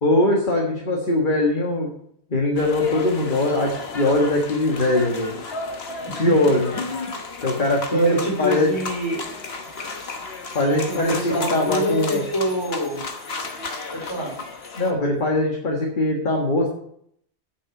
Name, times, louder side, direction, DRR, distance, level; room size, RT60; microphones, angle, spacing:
voice 1, 0.0-1.9 2.3-5.3 6.2-6.7 7.4-8.7 10.5-12.3 14.8-16.7, left 2 dB, 45° left, -1 dB, 1.7 m, -21 dB
sound 1, 2.6-14.9, left 3 dB, 65° left, 1.4 m, -34 dB
voice 2, 6.0-7.1 7.9-9.2 10.9-13.0 13.9-14.3, right 1 dB, 25° left, -3 dB, 4.5 m, -26 dB
8.3 x 6.4 x 8.1 m, 0.70 s
omnidirectional pair, 1.1 m